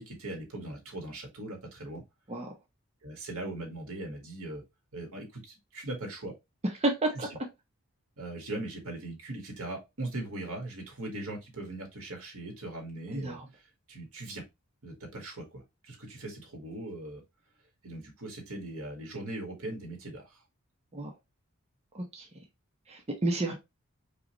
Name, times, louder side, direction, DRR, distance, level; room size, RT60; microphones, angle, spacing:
voice 1, 0.0-2.0 3.0-4.6 4.9-6.3 7.1-7.3 8.2-13.6 13.9-14.4 14.8-17.2 17.8-20.4, right 2 dB, 85° right, 1.8 m, -40 dB
voice 2, 6.8-7.3 13.1-13.4 20.9-21.1 21.9-22.4 22.9-23.5, right 2 dB, 30° right, 0.9 m, -31 dB
5.0 x 2.5 x 3.0 m
head